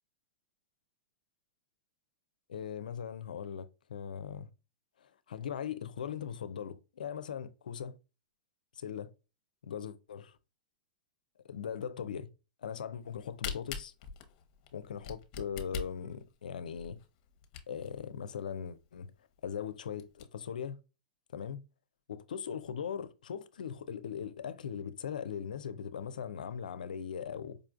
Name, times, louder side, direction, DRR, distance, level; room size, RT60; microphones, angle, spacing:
voice 1, 2.5-4.5 5.0-8.0 8.8-9.1 9.6-10.4 11.4-12.3 12.6-13.9 14.7-17.0 17.7-19.1 19.4-20.8 21.3-21.6 22.1-27.6, left 7 dB, 90° left, 0.4 m, -40 dB
Camera, 13.0-18.0 18.5-18.6 18.8-18.9 19.4-19.5 19.8-20.2, left 6 dB, 50° left, 0.8 m, -42 dB
5.0 x 2.5 x 2.4 m
hypercardioid pair, 125°, 4 cm